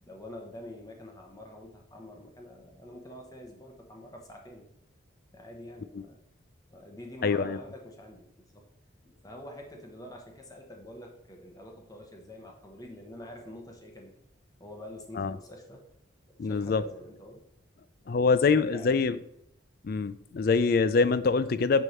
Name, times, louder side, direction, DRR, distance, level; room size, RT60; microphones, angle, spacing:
voice 1, 0.0-4.7 5.3-6.2 6.7-8.7 9.0-14.1 14.6-15.8 16.3-17.4 18.1-19.2, left 1 dB, 20° left, 1 dB, 1.1 m, -46 dB
voice 2, 7.2-7.6 15.2-15.3 16.4-16.8 18.1-19.2 19.8-21.8, left 4 dB, 45° left, 14 dB, 0.4 m, -24 dB
9.8 x 3.6 x 4.4 m, 0.78 s
head